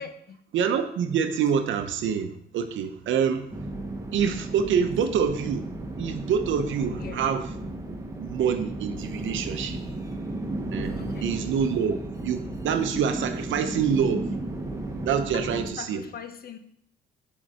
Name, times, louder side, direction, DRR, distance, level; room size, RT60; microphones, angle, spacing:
voice 1, 0.0-0.4 7.0-7.2 11.0-11.4 15.3-16.6, left 6 dB, 50° left, 9 dB, 0.9 m, -40 dB
voice 2, 0.5-3.5 4.1-5.7 6.0-7.5 8.2-9.8 10.7-10.9 11.2-14.3 15.1-16.0, right 7 dB, 75° right, 8 dB, 0.8 m, -26 dB
sound 1, 3.5-15.7, right 2 dB, 15° right, 1.1 m, -34 dB
6.1 x 4.0 x 6.3 m, 0.68 s
cardioid pair, 90°, 20 cm